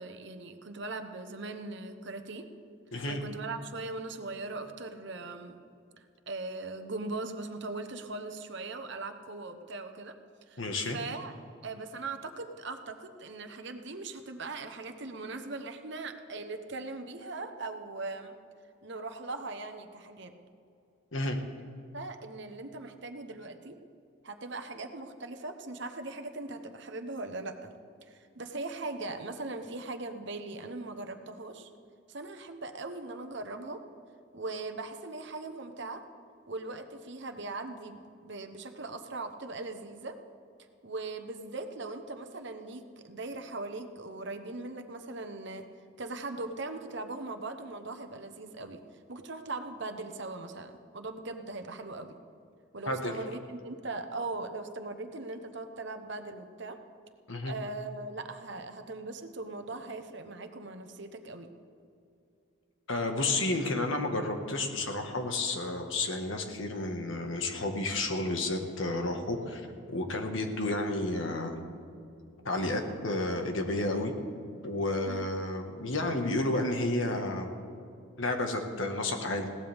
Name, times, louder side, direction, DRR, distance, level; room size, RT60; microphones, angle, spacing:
voice 1, 0.0-2.5 3.1-5.6 6.0-10.1 10.5-10.6 10.9-11.3 11.6-18.3 18.8-20.3 21.9-23.8 24.2-27.7 28.0-31.7 32.1-33.8 34.3-36.0 36.5-40.2 40.8-45.7 46.0-48.8 49.1-52.2 52.7-56.8 57.4-61.5 75.0-75.2, right 3 dB, 55° right, 7 dB, 1.1 m, -40 dB
voice 2, 10.6-11.0 21.1-21.4 52.8-53.2 57.3-57.5 62.9-69.6 69.9-71.6 72.4-74.1 74.6-77.5 78.2-79.5, left 2 dB, 65° left, 4 dB, 1.7 m, -31 dB
20.5 x 17.0 x 3.6 m, 2.6 s
head